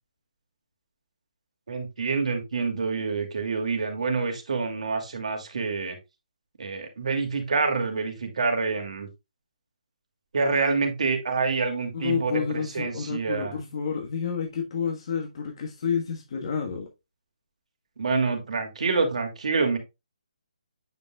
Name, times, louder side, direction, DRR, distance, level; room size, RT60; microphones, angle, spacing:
voice 1, 1.7-6.0 6.6-9.1 10.3-13.5 18.0-19.8, right 4 dB, 65° right, 2.4 m, -27 dB
voice 2, 11.9-16.9, left 6 dB, 45° left, 1.4 m, -29 dB
9.2 x 5.4 x 2.3 m
figure-of-eight pair, 155°, 4 cm